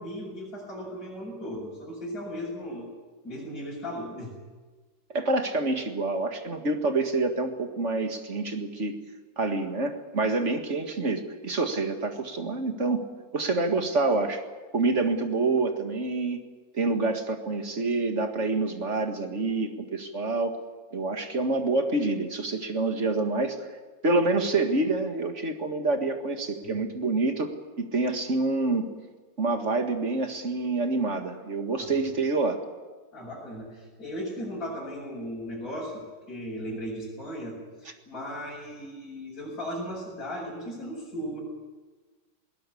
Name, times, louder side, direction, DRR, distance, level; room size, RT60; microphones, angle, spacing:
voice 1, 0.0-2.9 3.2-4.3 26.6-26.9 31.8-31.9 33.1-41.4, equal, 45° left, -5 dB, 6.7 m, -37 dB
voice 2, 5.1-9.0 9.4-13.1 13.3-14.4 14.7-16.5 16.7-20.5 20.9-23.7 24.0-28.9 29.4-32.6, right 3 dB, 40° right, 5 dB, 2.1 m, -27 dB
21.0 x 19.0 x 8.6 m, 1.3 s
omnidirectional pair, 2.1 m